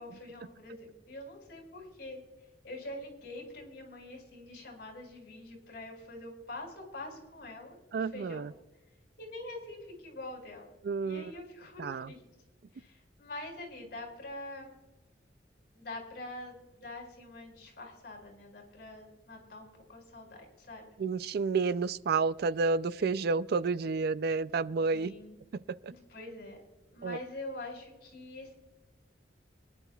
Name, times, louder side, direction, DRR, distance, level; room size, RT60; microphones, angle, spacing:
voice 1, 0.0-2.2 2.6-8.5 9.2-10.8 11.0-12.2 12.7-14.8 15.7-20.9 24.9-25.4 25.8-26.6 26.9-28.5, left 2 dB, 60° left, 0 dB, 5.0 m, -45 dB
voice 2, 7.9-8.5 10.8-11.3 11.8-12.1 21.0-25.1 25.5-25.9 27.0-27.2, right 4 dB, 55° right, 16 dB, 0.4 m, -30 dB
25.0 x 11.0 x 2.3 m, 1.1 s
head